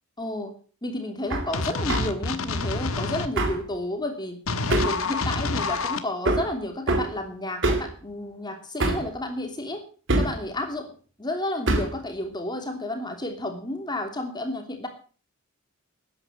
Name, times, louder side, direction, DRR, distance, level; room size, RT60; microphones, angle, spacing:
voice 1, 0.2-0.5 0.8-4.4 4.7-9.8 10.2-14.9, left 1 dB, 20° left, 4 dB, 3.0 m, -31 dB
Hammer, 1.3-1.5 1.9-2.1 3.4-3.6 4.7-5.0 6.3-6.5 6.9-7.1 7.6-7.9 8.8-9.1 10.1-10.4 11.7-12.0, right 2 dB, 60° right, 2.7 m, -24 dB
sound 1, 1.5-3.3 4.5-6.0, left 3 dB, 75° left, 1.5 m, -28 dB
13.0 x 10.0 x 7.4 m, 0.39 s
head